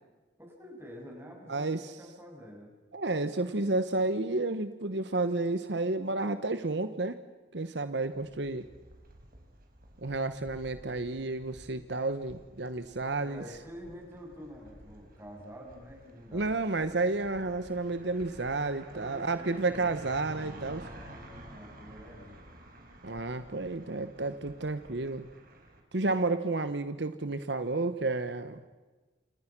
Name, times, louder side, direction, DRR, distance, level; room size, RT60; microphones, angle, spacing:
voice 1, 0.4-2.7 13.2-17.0 18.9-19.9 20.9-22.4 26.1-26.3, equal, 15° right, 0 dB, 7.3 m, -48 dB
voice 2, 1.5-1.9 2.9-7.2 7.5-8.7 10.0-13.4 16.3-20.9 23.0-25.3 25.9-28.7, right 2 dB, 65° right, 11 dB, 1.1 m, -31 dB
sound 1, 8.1-25.8, right 1 dB, 50° right, 5.0 m, -51 dB
28.5 x 28.0 x 6.1 m, 1.3 s
head